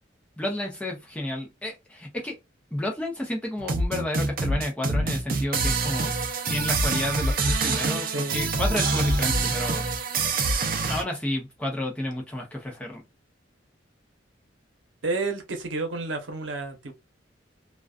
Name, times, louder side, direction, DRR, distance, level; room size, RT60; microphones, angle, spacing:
voice 1, 0.4-2.4 2.7-6.1 6.5-9.9 10.9-13.0, left 1 dB, 5° left, 0.6 m, -31 dB
sound 1, 3.6-11.0, right 3 dB, 50° right, 0.5 m, -25 dB
voice 2, 8.1-8.4 15.0-16.9, right 3 dB, 85° right, 0.8 m, -30 dB
2.3 x 2.3 x 2.3 m
head